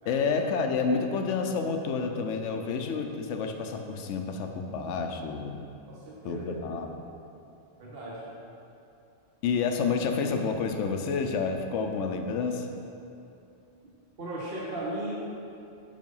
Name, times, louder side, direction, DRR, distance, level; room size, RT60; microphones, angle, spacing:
voice 1, 0.1-5.7 6.2-6.9 9.4-12.7, left 5 dB, 80° left, 5 dB, 1.0 m, -29 dB
voice 2, 5.9-6.4 7.8-8.3 14.2-15.1, right 1 dB, 55° right, -5 dB, 1.3 m, -36 dB
7.4 x 5.2 x 5.4 m, 2.7 s
omnidirectional pair, 1.2 m